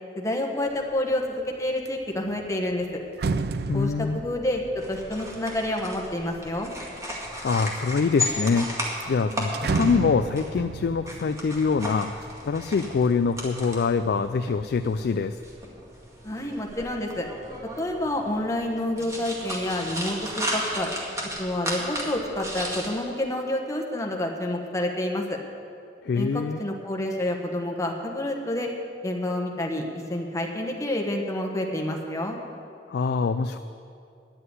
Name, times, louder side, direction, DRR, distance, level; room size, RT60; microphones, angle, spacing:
voice 1, 0.1-2.9 3.7-4.6 4.9-6.7 16.2-17.3 17.8-20.9 21.4-25.4 26.1-28.7 29.0-32.4, left 1 dB, 15° left, 1 dB, 1.2 m, -28 dB
sound 1, 0.8-1.1 1.5-6.9 7.5-8.1 8.5-8.6 8.9-12.8 13.2-13.8, right 4 dB, 60° right, 0.4 m, -33 dB
voice 2, 3.7-4.2 7.4-8.7 9.1-15.4 26.0-26.6 32.9-33.6, left 5 dB, 60° left, 10 dB, 0.3 m, -24 dB
sound 2, 4.8-22.9, equal, 20° right, 2.0 m, -35 dB
10.0 x 7.8 x 9.6 m, 2.5 s
head